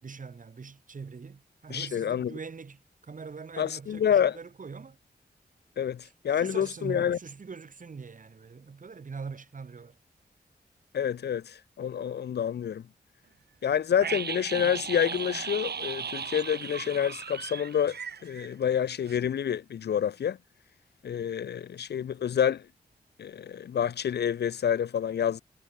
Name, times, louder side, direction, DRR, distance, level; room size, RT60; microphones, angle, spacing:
voice 1, 0.0-5.0 6.0-10.0, right 5 dB, 50° right, 4.6 m, -42 dB
voice 2, 1.7-2.3 3.6-4.4 5.8-7.2 10.9-12.8 13.6-18.0 18.2-20.4 21.0-22.7 23.2-25.4, left 8 dB, 75° left, 0.5 m, -28 dB
sound 1, 14.0-18.8 19.1-19.2, right 6 dB, 70° right, 2.4 m, -36 dB
wide cardioid pair, 160°, 17 cm